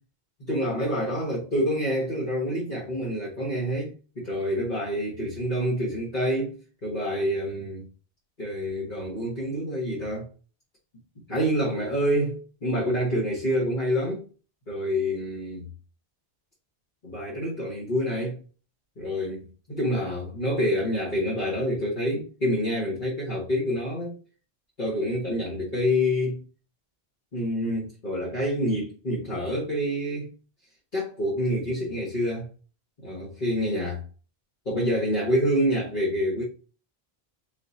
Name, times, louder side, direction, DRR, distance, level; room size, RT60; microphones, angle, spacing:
voice 1, 0.4-7.8 8.4-10.3 11.3-14.2 14.7-15.7 17.0-18.4 19.0-24.2 24.8-26.4 27.3-30.3 30.9-32.5 33.0-34.0 34.6-36.4, equal, 50° left, 1.5 m, -27 dB
4.1 x 4.1 x 2.6 m
omnidirectional pair, 1.0 m